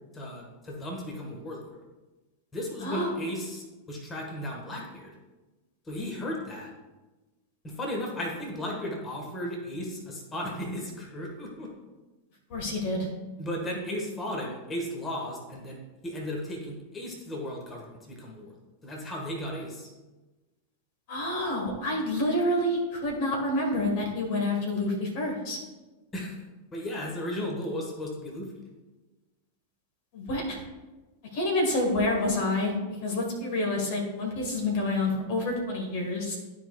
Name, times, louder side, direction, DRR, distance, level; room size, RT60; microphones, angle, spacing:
voice 1, 0.1-1.8 2.5-5.1 5.8-6.7 7.6-11.7 13.4-18.5 18.8-19.9 26.1-26.4 26.7-28.5, left 1 dB, 20° left, 0 dB, 1.5 m, -35 dB
voice 2, 2.8-3.1 12.5-13.1 21.1-25.6 30.1-30.6 31.3-36.4, left 1 dB, 50° left, 0 dB, 1.5 m, -28 dB
12.5 x 4.8 x 2.4 m, 1.2 s
figure-of-eight pair, 90°, 0 cm